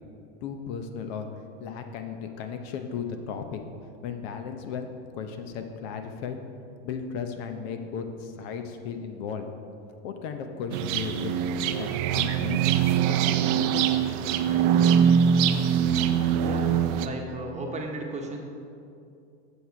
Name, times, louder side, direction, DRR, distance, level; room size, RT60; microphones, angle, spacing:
voice 1, 0.4-1.3 1.6-3.6 4.0-4.9 5.1-6.4 6.8-9.5 10.0-11.4 11.8-13.9, left 6 dB, 60° left, 6 dB, 0.9 m, -35 dB
sound 1, 10.7-17.1, right 8 dB, 50° right, 0.6 m, -23 dB
voice 2, 16.4-16.7 17.0-18.4, right 2 dB, 20° right, 1 dB, 1.1 m, -35 dB
8.2 x 6.5 x 4.6 m, 2.5 s
supercardioid pair, 115°, 35 cm